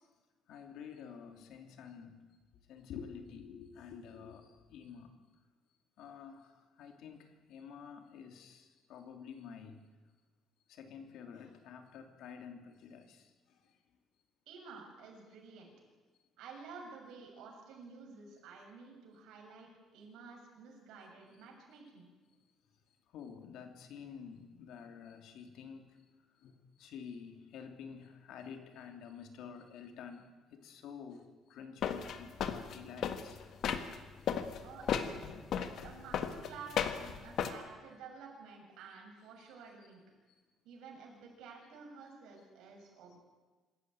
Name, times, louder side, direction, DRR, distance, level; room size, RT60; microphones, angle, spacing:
voice 1, 0.5-2.2 2.7-5.1 6.0-9.8 10.7-13.3 23.1-25.9 26.4-26.5 26.8-30.2 30.5-31.2 31.5-33.4 36.4-36.6, left 7 dB, 70° left, 6 dB, 2.9 m, -49 dB
voice 2, 14.5-15.7 16.4-22.1 34.6-35.3 35.6-40.0 40.6-43.2, right 5 dB, 85° right, 1 dB, 7.2 m, -51 dB
sound 1, 31.8-34.0 34.3-37.5, left 8 dB, 50° left, 1.5 m, -35 dB
25.5 x 14.0 x 9.3 m, 1.3 s
cardioid pair, 175°, 0 cm